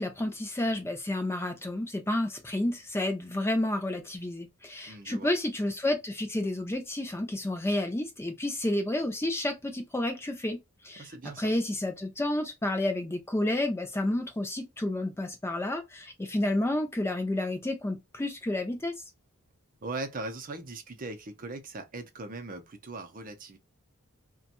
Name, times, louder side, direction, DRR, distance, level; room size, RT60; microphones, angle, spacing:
voice 1, 0.0-10.6 10.8-11.1 11.4-18.9, left 1 dB, 10° left, 0.4 m, -30 dB
voice 2, 4.9-5.3 11.0-11.5 19.8-23.6, right 2 dB, 40° right, 0.6 m, -39 dB
2.8 x 2.2 x 2.4 m
head